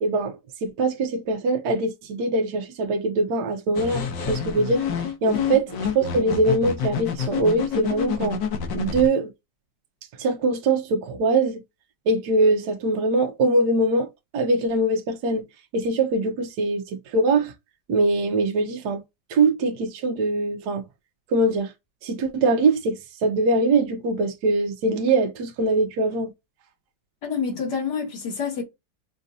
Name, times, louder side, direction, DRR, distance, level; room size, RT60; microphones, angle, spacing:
voice 1, 0.0-4.9 5.2-8.4 8.7-9.3 10.2-11.6 12.1-15.4 15.7-17.5 17.9-19.0 19.3-20.8 21.3-21.7 22.0-26.3, right 2 dB, 70° right, 1.3 m, -22 dB
sound 1, 3.8-9.1, left 7 dB, 85° left, 1.7 m, -28 dB
voice 2, 27.2-28.6, left 6 dB, 65° left, 2.3 m, -28 dB
5.6 x 2.5 x 2.6 m
omnidirectional pair, 1.9 m